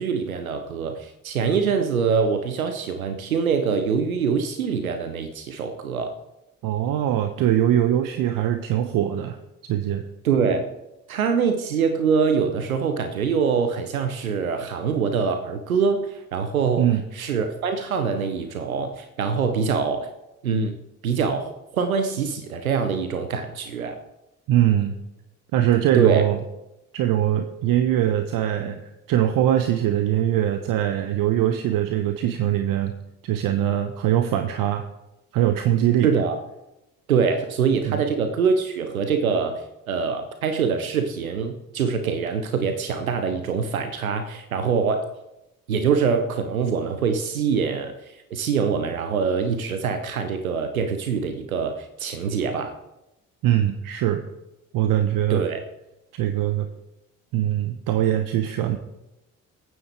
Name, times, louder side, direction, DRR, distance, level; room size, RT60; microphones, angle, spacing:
voice 1, 0.0-6.2 10.2-10.7 11.1-20.1 20.4-20.8 21.0-24.0 25.9-26.2 36.0-36.4 37.1-45.1 45.7-52.8 55.3-55.6, right 6 dB, 80° right, 8 dB, 0.9 m, -24 dB
voice 2, 6.6-9.4 9.7-10.0 16.8-17.0 24.5-25.0 25.5-26.4 26.9-32.9 33.2-34.9 35.3-36.1 37.8-38.0 53.4-54.2 54.7-55.4 56.1-56.7 57.3-58.8, right 11 dB, 55° right, 8 dB, 1.0 m, -22 dB
27.5 x 9.3 x 3.4 m, 0.93 s
figure-of-eight pair, 50°, 41 cm